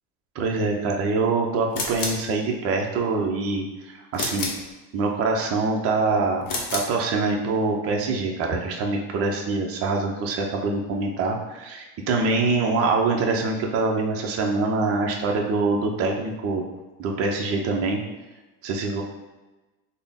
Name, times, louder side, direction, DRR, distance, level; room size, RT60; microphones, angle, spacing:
voice 1, 0.3-4.5 4.9-16.6 17.0-18.0 18.6-19.0, right 3 dB, 30° right, 1 dB, 0.5 m, -24 dB
sound 1, 1.7-2.3 4.1-4.7 6.4-7.0, left 3 dB, 40° left, 0.8 m, -29 dB
3.7 x 2.1 x 3.4 m, 1.1 s
supercardioid pair, 120°, 50 cm